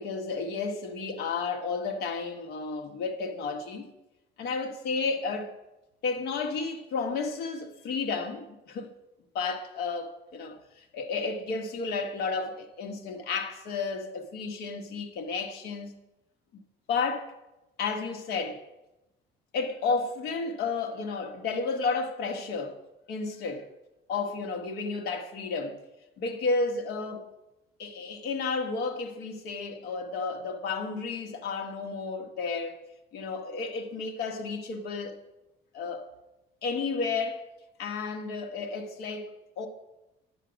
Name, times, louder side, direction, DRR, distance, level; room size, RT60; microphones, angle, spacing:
voice 1, 0.0-3.9 4.4-5.5 6.0-8.9 9.3-16.0 16.9-17.3 17.8-18.6 19.5-22.8 23.1-23.7 24.1-25.8 26.2-27.3 27.8-32.8 33.1-35.2 35.7-36.0 36.6-37.5 37.8-39.7, left 4 dB, 75° left, 1.4 m, -32 dB
10.5 x 8.0 x 5.2 m
cardioid pair, 110°, 17 cm